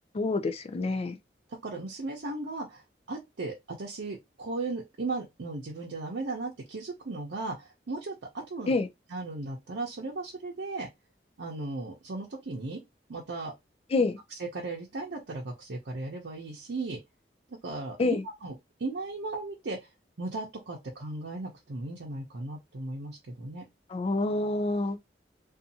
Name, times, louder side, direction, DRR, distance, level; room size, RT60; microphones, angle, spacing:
voice 1, 0.1-1.2 8.7-8.9 13.9-14.2 18.0-18.2 23.9-25.0, left 3 dB, 35° left, 0.4 m, -27 dB
voice 2, 1.6-2.8 3.1-8.8 9.1-10.9 11.4-12.8 13.1-13.5 14.3-17.0 17.6-18.5 18.8-19.9 20.2-23.6, right 3 dB, 75° right, 0.6 m, -36 dB
2.6 x 2.4 x 2.7 m
head